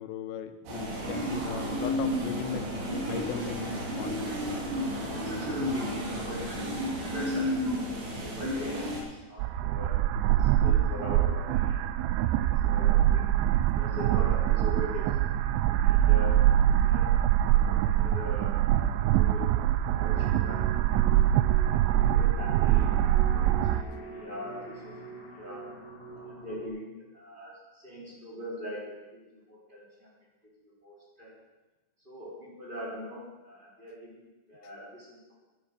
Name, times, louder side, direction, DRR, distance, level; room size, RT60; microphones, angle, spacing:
voice 1, 0.0-4.4, left 9 dB, 85° left, 8 dB, 2.6 m, -38 dB
sound 1, 0.7-9.0, equal, 65° right, 5.2 m, -32 dB
voice 2, 5.1-10.1 10.3-11.8 12.1-13.2 13.7-15.4 15.8-19.5 19.8-20.8 21.3-21.4 21.9-23.2 23.4-25.7 26.1-29.2 29.5-30.1 30.6-31.3 32.0-34.2 34.5-35.3, equal, 15° right, -5 dB, 2.0 m, -42 dB
sound 2, 9.4-23.8, right 12 dB, 90° right, 2.6 m, -24 dB
Background atmospheric loop, 20.0-26.7, right 3 dB, 45° left, 4.1 m, -44 dB
12.0 x 10.0 x 6.4 m, 1.1 s
omnidirectional pair, 6.0 m